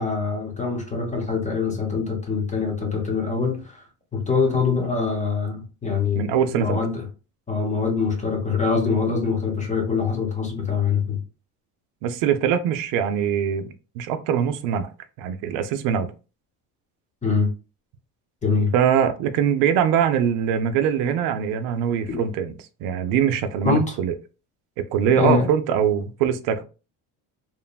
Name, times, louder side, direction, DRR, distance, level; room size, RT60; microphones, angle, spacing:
voice 1, 0.0-3.8 4.1-7.0 7.5-11.2 17.2-17.5 18.4-18.7 22.1-22.2 23.6-24.0 25.2-25.5, left 5 dB, 15° left, 0.8 m, -24 dB
voice 2, 6.2-6.8 12.0-14.9 15.2-16.1 18.7-22.5 22.8-24.2 24.8-26.6, right 8 dB, 75° right, 0.5 m, -22 dB
3.1 x 2.2 x 2.2 m
cardioid pair, 110°, 41 cm